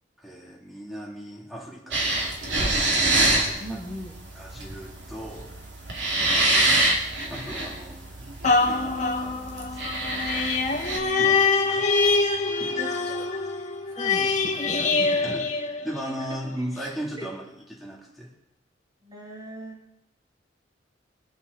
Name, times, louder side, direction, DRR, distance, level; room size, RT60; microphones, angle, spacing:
voice 1, 0.2-2.1 3.7-3.8 4.3-5.5 7.3-8.3 8.6-10.0 10.3-12.1 12.6-12.9 15.2-15.4 15.8-17.4 17.7-18.3, equal, ahead, -3 dB, 3.1 m, -37 dB
sound 1, 1.9-11.0, right 2 dB, 75° right, 2.7 m, -26 dB
voice 2, 3.6-4.2 12.8-13.3 13.8-15.4 16.6-16.7 17.2-17.3 19.0-19.8, equal, 25° right, -2 dB, 2.9 m, -40 dB
sound 2, 8.4-16.3 16.8-16.9, left 4 dB, 40° left, 1.7 m, -24 dB
25.0 x 8.9 x 4.1 m, 0.79 s
head